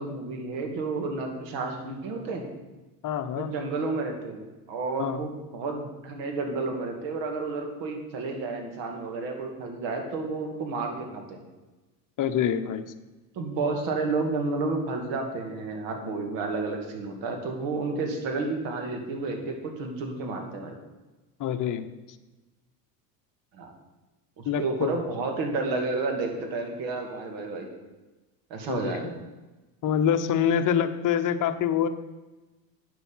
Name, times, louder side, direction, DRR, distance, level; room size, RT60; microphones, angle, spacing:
voice 1, 0.0-2.4 3.4-11.4 13.4-20.8 23.5-23.7 24.4-27.7 28.5-29.1, right 3 dB, 60° right, 3 dB, 2.5 m, -31 dB
voice 2, 3.0-3.5 5.0-5.2 12.2-12.8 21.4-21.9 24.5-24.9 28.7-29.0 29.8-31.9, left 8 dB, 40° left, 8 dB, 0.9 m, -25 dB
9.4 x 6.8 x 5.7 m, 1.1 s
supercardioid pair, 95°, 48 cm